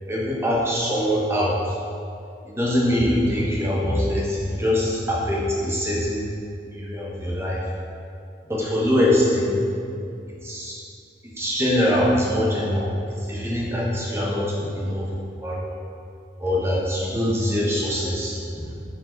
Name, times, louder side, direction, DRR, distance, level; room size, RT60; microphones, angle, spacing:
voice 1, 0.1-1.6 2.4-6.2 6.7-7.7 8.5-9.6 10.4-10.8 11.4-12.9 13.3-15.1 15.4-15.7 16.4-18.4, left 1 dB, 15° right, -4 dB, 1.2 m, -23 dB
8.8 x 4.6 x 4.0 m, 2.5 s
head